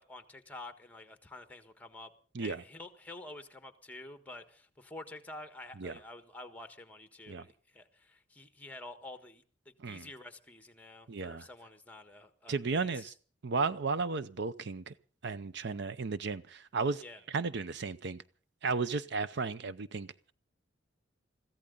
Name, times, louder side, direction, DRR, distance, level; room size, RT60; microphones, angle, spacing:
voice 1, 0.0-2.1 2.4-13.1 17.0-17.2, left 2 dB, 10° left, 1.4 m, -49 dB
voice 2, 11.1-11.5 12.5-13.1 13.4-14.9 15.2-17.0 17.3-18.2 18.6-20.3, right 4 dB, 65° right, 0.6 m, -34 dB
22.0 x 15.0 x 3.9 m
head